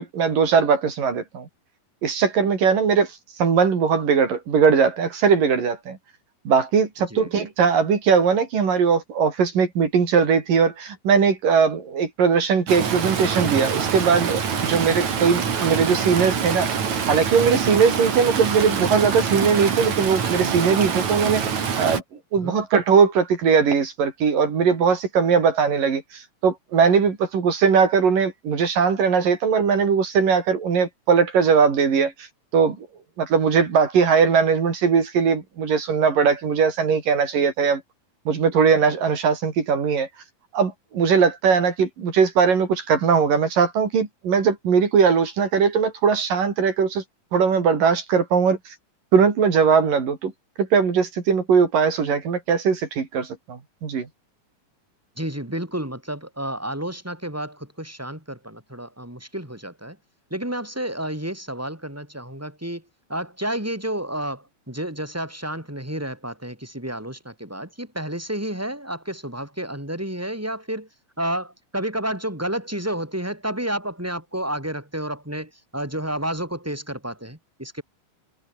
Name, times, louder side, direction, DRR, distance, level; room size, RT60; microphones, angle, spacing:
voice 1, 0.0-1.5 2.0-3.1 3.4-6.0 6.5-16.7 17.1-22.0 22.3-32.1 32.5-32.9 33.2-37.8 38.3-40.1 40.5-47.0 47.3-48.8 49.1-50.3 50.6-54.1, right 6 dB, 75° right, 5.4 m, -20 dB
Stream, 12.7-22.0, right 6 dB, 55° right, 4.3 m, -25 dB
voice 2, 55.2-60.0 60.3-62.8 63.1-70.9 71.2-77.8, right 1 dB, 5° right, 6.8 m, -30 dB
omnidirectional pair, 3.9 m